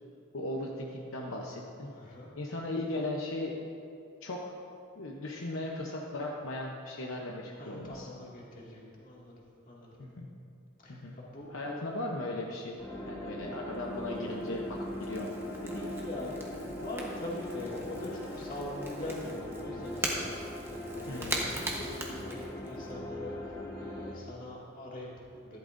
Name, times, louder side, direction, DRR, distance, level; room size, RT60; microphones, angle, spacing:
voice 1, 0.3-1.9 2.3-3.5 4.2-4.4 5.0-8.1 10.0-10.3 10.9-11.1 11.5-12.8 13.0-14.6 15.0-15.3 15.6-15.9 21.1-21.7, left 1 dB, 65° left, -1 dB, 0.8 m, -37 dB
voice 2, 1.9-2.3 7.6-10.0 10.8-11.9 15.9-25.6, left 1 dB, 40° left, -5 dB, 2.1 m, -43 dB
sound 1, 12.8-24.1, left 1 dB, 15° left, 1.4 m, -40 dB
Crackle / Crack, 13.4-22.9, right 1 dB, 10° right, 1.1 m, -41 dB
14.0 x 12.0 x 2.6 m, 2.5 s
head